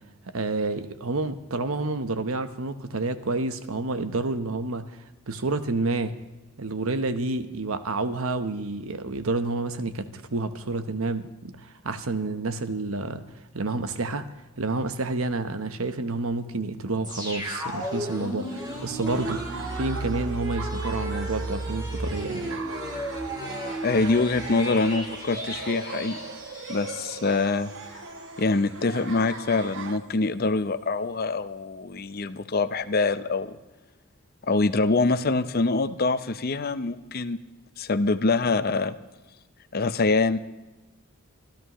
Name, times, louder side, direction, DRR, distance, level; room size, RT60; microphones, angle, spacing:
voice 1, 0.3-4.8 5.3-6.2 6.6-13.2 13.5-14.2 14.6-19.4 19.7-22.5, right 3 dB, 80° right, 10 dB, 1.0 m, -29 dB
sound 1, 17.0-27.9 28.2-28.3, right 1 dB, 20° right, 3.0 m, -34 dB
Laughter, 19.1-30.0, right 4 dB, 60° right, 1.1 m, -39 dB
voice 2, 23.8-26.2 26.7-27.7 28.4-33.6 34.5-37.4 37.8-38.9 39.7-40.4, left 3 dB, 45° left, 12 dB, 0.6 m, -24 dB
25.0 x 13.5 x 3.1 m, 1.1 s
head